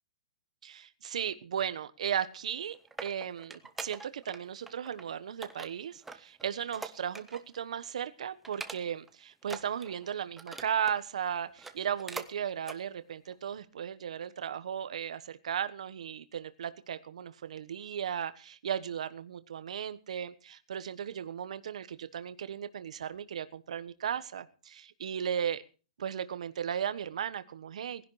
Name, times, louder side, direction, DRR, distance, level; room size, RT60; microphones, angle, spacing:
voice 1, 0.6-2.7 3.0-25.6 26.0-28.0, right 8 dB, 55° right, 12 dB, 1.2 m, -36 dB
sound 1, 2.4-4.4 4.7-5.0 5.4-7.6 7.9-8.1 8.4-9.1 9.4-11.0 11.5-12.3 12.6-12.8 13.3-13.4, right 3 dB, 5° right, 0.7 m, -44 dB
19.0 x 11.0 x 5.0 m, 0.36 s
hypercardioid pair, 180°, 4 cm